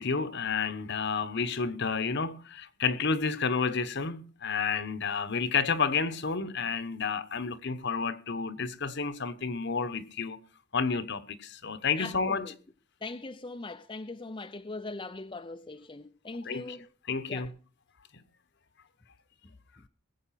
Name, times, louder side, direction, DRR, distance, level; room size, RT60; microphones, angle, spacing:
voice 1, 0.0-10.4 10.7-12.5 16.4-16.8 17.1-17.5, left 5 dB, 55° left, 1.1 m, -30 dB
voice 2, 12.0-12.6 13.0-16.9 17.3-17.5, left 3 dB, 25° left, 0.6 m, -40 dB
20.5 x 8.0 x 5.8 m
head